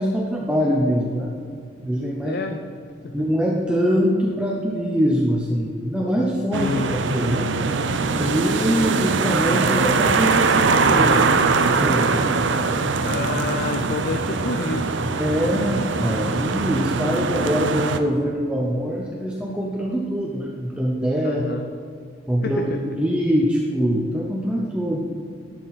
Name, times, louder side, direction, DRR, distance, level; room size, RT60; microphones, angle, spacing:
voice 1, 0.0-1.4 1.8-2.4 3.1-7.5 8.1-12.4 15.2-21.4 22.3-25.0, equal, 5° right, -2 dB, 0.7 m, -23 dB
voice 2, 2.2-2.6 3.0-3.3 6.5-7.0 13.0-15.0 21.2-21.7 22.4-22.8, left 3 dB, 55° left, 6 dB, 0.5 m, -29 dB
sound 1, 6.5-18.0, right 4 dB, 75° right, 0.6 m, -21 dB
11.5 x 7.6 x 4.1 m, 2.3 s
head